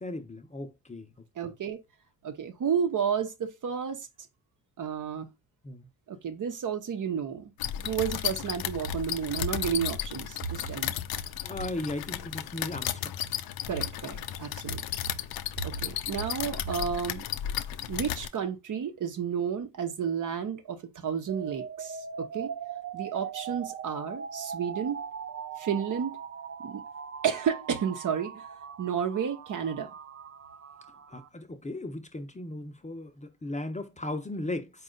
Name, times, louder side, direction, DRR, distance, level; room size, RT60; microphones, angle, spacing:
voice 1, 0.0-1.1 5.6-5.9 11.4-13.1 31.1-34.7, left 2 dB, 20° left, 0.7 m, -36 dB
voice 2, 1.4-1.8 2.2-4.1 4.8-5.3 6.1-7.5 7.8-11.0 13.7-14.8 15.6-17.2 17.9-22.5 22.9-25.0 25.6-26.2 26.6-26.8 27.2-28.4 28.8-29.9, right 7 dB, 55° right, 0.8 m, -31 dB
sound 1, 7.6-18.3, left 11 dB, 75° left, 0.5 m, -34 dB
sound 2, 21.3-31.3, right 7 dB, 40° right, 0.4 m, -40 dB
4.2 x 2.4 x 3.8 m
cardioid pair, 80°, 37 cm